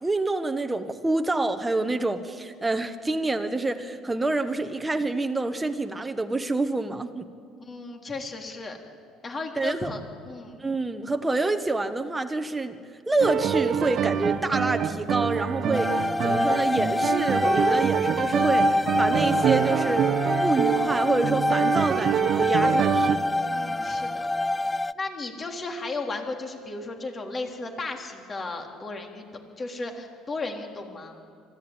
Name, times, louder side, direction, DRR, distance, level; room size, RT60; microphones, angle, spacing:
voice 1, 0.0-7.3 9.6-9.9 10.6-12.8 13.1-20.1 20.4-23.2, right 2 dB, 15° right, 6 dB, 1.3 m, -27 dB
voice 2, 7.7-8.8 9.2-10.6 23.5-24.3 25.0-31.2, left 3 dB, 35° left, 3 dB, 3.5 m, -35 dB
sound 1, 13.2-23.2, right 9 dB, 55° right, 1.1 m, -26 dB
sound 2, 15.7-24.9, left 2 dB, 15° left, 0.5 m, -26 dB
25.0 x 15.0 x 9.0 m, 2.3 s
hypercardioid pair, 65°, 0 cm